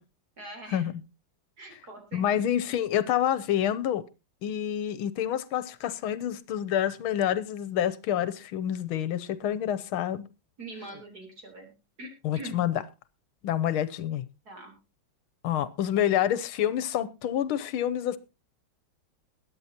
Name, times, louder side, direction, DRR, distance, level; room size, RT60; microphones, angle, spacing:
voice 1, 0.4-0.9 1.6-2.4 10.6-11.7 12.0-12.6 14.5-14.7, right 2 dB, 45° right, 4.1 m, -43 dB
voice 2, 2.1-4.0 4.4-10.2 12.2-12.8 13.4-14.3 15.4-18.2, left 10 dB, 85° left, 1.7 m, -28 dB
21.5 x 9.4 x 2.9 m
omnidirectional pair, 2.3 m